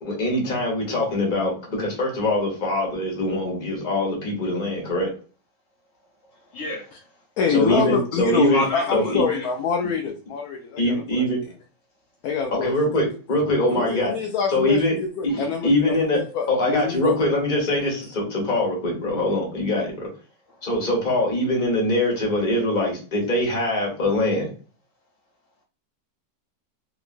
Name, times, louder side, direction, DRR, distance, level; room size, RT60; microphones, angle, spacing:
voice 1, 0.0-5.1 7.5-8.6 8.9-9.2 10.8-11.4 12.5-14.1 14.5-14.9 15.2-16.2 16.5-20.1 20.6-24.5, left 1 dB, 30° left, -2 dB, 1.2 m, -23 dB
voice 2, 6.5-6.9 8.5-9.5, left 1 dB, 50° left, -1 dB, 1.3 m, -30 dB
voice 3, 7.4-11.2 12.2-12.7 13.7-16.1 16.3-17.1, left 6 dB, 70° left, 2 dB, 0.9 m, -25 dB
2.9 x 2.9 x 2.5 m, 0.38 s
omnidirectional pair, 1.9 m